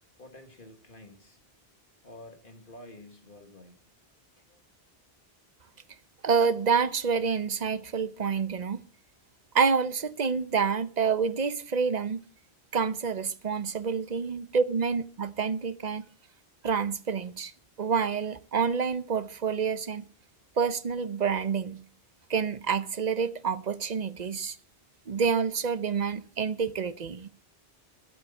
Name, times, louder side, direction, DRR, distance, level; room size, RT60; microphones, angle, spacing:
voice 1, 0.2-1.4 2.0-3.8 4.4-4.6 14.1-14.3, left 1 dB, 55° left, 2.2 m, -50 dB
voice 2, 6.2-8.8 9.5-12.2 12.7-16.0 16.6-17.5 17.8-20.1 20.6-21.8 22.3-24.6 25.1-27.3, right 6 dB, 45° right, 0.8 m, -28 dB
14.0 x 8.2 x 7.0 m
omnidirectional pair, 1.0 m